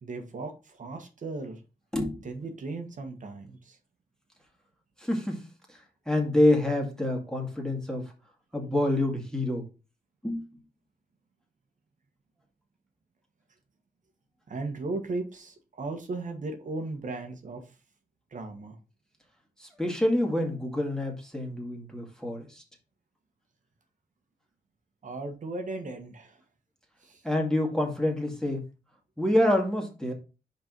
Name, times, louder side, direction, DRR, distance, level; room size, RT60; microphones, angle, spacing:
voice 1, 0.0-1.6 2.2-3.8 14.5-17.6 18.3-18.8 25.0-26.4 27.0-27.2, right 3 dB, 55° right, 4 dB, 1.4 m, -36 dB
voice 2, 1.9-2.2 5.0-5.5 6.1-8.1 8.5-9.6 10.2-10.5 19.6-22.6 27.2-28.6 29.2-30.1, left 1 dB, 5° left, 1 dB, 2.2 m, -27 dB
5.1 x 4.7 x 5.3 m, 0.31 s
cardioid pair, 75°, 16 cm